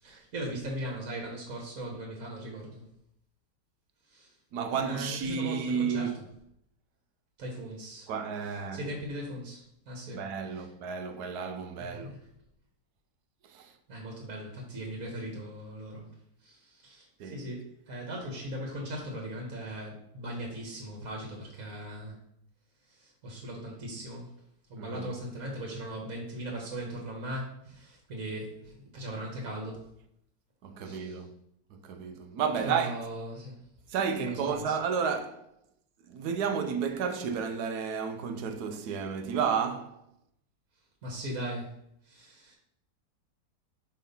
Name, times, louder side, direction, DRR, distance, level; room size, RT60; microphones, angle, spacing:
voice 1, 0.0-2.8 4.1-4.3 4.7-6.1 7.4-8.1 8.7-10.2 10.6-10.7 11.8-12.2 13.9-16.1 16.4-22.2 22.9-24.3 24.7-29.8 30.8-31.2 32.6-33.6 34.2-34.7 41.0-41.7 42.0-42.5, right 1 dB, 50° right, 1.7 m, -39 dB
voice 2, 4.5-6.1 8.1-8.9 10.1-12.2 13.4-13.7 17.2-17.5 24.8-25.1 30.6-31.3 31.7-33.0 33.9-35.5 36.0-40.0, right 6 dB, 70° right, 1.1 m, -32 dB
5.5 x 4.2 x 5.3 m
omnidirectional pair, 1.9 m